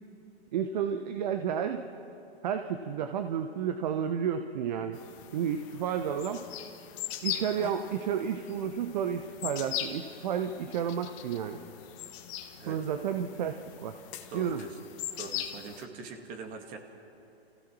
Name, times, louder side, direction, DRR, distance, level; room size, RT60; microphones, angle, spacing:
voice 1, 0.5-1.8 2.4-5.0 5.3-6.4 7.2-11.6 12.7-14.0 14.3-14.6, right 8 dB, 45° right, 7 dB, 1.0 m, -31 dB
sound 1, 4.9-15.9, left 11 dB, 30° left, 1.4 m, -41 dB
voice 2, 14.3-14.8 15.2-16.8, right 4 dB, 25° right, 4 dB, 2.2 m, -42 dB
29.0 x 16.0 x 6.3 m, 2.8 s
figure-of-eight pair, 125°, 31 cm